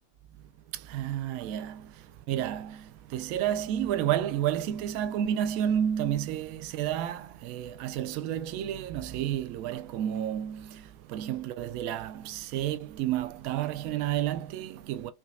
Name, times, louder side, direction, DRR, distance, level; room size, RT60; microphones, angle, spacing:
voice 1, 0.7-15.1, right 10 dB, 45° right, 0.4 m, -31 dB
2.8 x 2.2 x 2.4 m
figure-of-eight pair, 90°, 0 cm